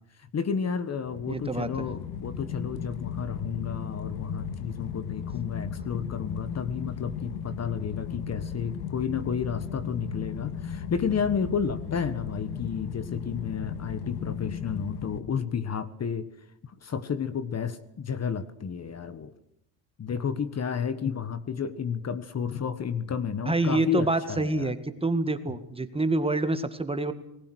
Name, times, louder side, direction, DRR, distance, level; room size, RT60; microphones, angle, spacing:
voice 1, 0.3-16.3 16.6-19.3 20.0-24.7, left 6 dB, 35° left, 14 dB, 1.5 m, -31 dB
sound 1, 1.0-15.2, left 7 dB, 90° left, 2.2 m, -36 dB
voice 2, 1.3-1.9 23.5-27.1, right 2 dB, 10° right, 9 dB, 2.1 m, -27 dB
29.0 x 20.0 x 6.4 m, 0.79 s
cardioid pair, 105°, 44 cm